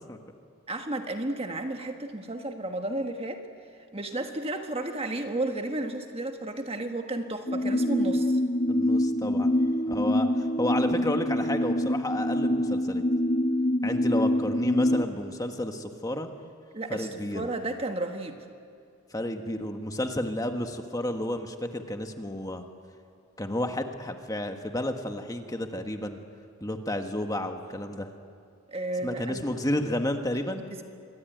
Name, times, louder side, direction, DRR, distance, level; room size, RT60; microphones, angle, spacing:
voice 1, 0.7-3.4 3.9-8.4 16.7-18.4 28.7-29.4 30.7-30.8, right 2 dB, 25° right, 5 dB, 1.5 m, -32 dB
sound 1, 7.5-15.1, left 1 dB, 35° left, 1.0 m, -25 dB
voice 2, 8.7-9.5 9.9-13.0 13.8-16.3 16.9-17.5 19.1-22.6 23.4-26.2 26.6-28.1 29.0-30.7, left 1 dB, 15° left, 5 dB, 1.5 m, -31 dB
27.0 x 22.5 x 9.2 m, 2.3 s
head